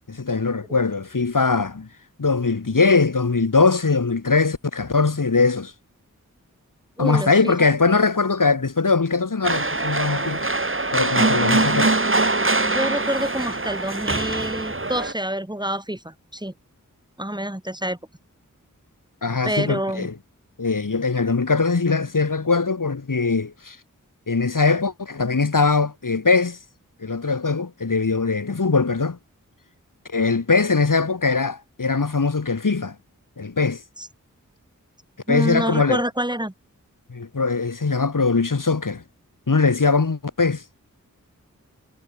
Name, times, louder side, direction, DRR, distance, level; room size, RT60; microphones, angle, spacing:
voice 1, 0.1-1.9 2.2-5.7 7.0-10.5 10.9-12.0 19.2-20.1 20.6-23.8 24.3-26.6 27.0-29.2 30.1-32.9 33.4-33.8 35.3-36.0 37.1-39.0 39.5-40.6, left 4 dB, 75° left, 4.6 m, -21 dB
voice 2, 7.0-7.7 12.7-16.5 17.2-18.0 19.4-20.1 34.0-34.1 35.3-36.5, right 1 dB, 15° right, 5.5 m, -27 dB
sound 1, 9.4-15.1, right 2 dB, 40° right, 3.9 m, -22 dB
cardioid pair, 40°, 32 cm